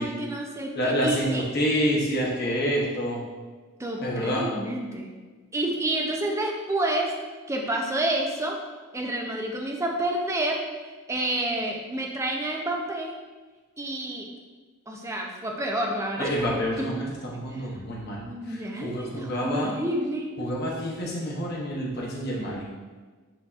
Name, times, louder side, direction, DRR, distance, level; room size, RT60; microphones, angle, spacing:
voice 1, 0.0-1.5 3.8-5.1 5.5-7.1 7.5-8.6 8.9-13.1 13.8-14.3 14.9-16.5 17.5-17.6 18.2-20.3, right 1 dB, 15° right, 0 dB, 0.4 m, -29 dB
voice 2, 0.7-3.2 4.0-4.5 16.2-19.7 20.4-22.7, equal, 50° left, -4 dB, 0.8 m, -28 dB
7.6 x 2.7 x 2.4 m, 1.4 s
head